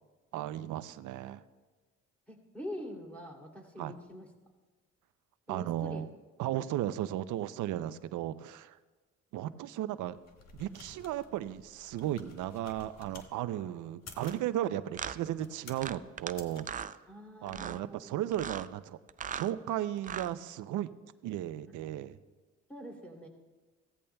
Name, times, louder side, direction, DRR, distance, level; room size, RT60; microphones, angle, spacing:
voice 1, 0.3-1.4 3.8-3.9 5.5-6.1 6.4-8.8 9.3-10.2 10.6-16.7 17.4-19.0 19.3-20.9 21.2-22.2, right 12 dB, 80° right, 14 dB, 0.6 m, -35 dB
voice 2, 2.3-4.3 5.5-6.1 17.1-18.2 22.7-23.3, left 1 dB, 5° left, 0 dB, 2.7 m, -44 dB
sound 1, 10.1-13.3 13.9-14.4 15.1-15.9 16.3-16.6, left 4 dB, 60° left, 1.5 m, -52 dB
sound 2, 14.2-14.4 14.9-15.2 15.8-16.3 16.6-17.0 17.5-17.8 18.3-18.7 19.1-19.5 20.0-20.3, right 7 dB, 30° right, 0.4 m, -39 dB
16.5 x 14.0 x 2.3 m, 1.3 s
cardioid pair, 90°, 30 cm